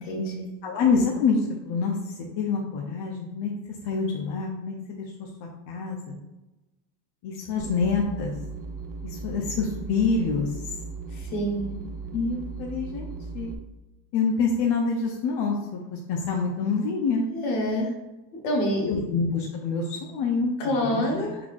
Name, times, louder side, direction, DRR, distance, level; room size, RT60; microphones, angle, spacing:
voice 1, 0.0-0.5 11.3-11.7 17.3-17.9 18.4-19.0 20.6-21.3, equal, 85° left, 0 dB, 1.2 m, -26 dB
voice 2, 0.6-3.5 3.8-6.2 7.2-8.3 9.0-10.5 12.1-13.5 14.1-17.2 18.9-21.4, left 4 dB, 60° left, 0 dB, 0.8 m, -27 dB
sound 1, 7.6-13.5, right 4 dB, 45° right, 0.6 m, -37 dB
4.5 x 3.9 x 2.4 m, 1.0 s
supercardioid pair, 85°, 46 cm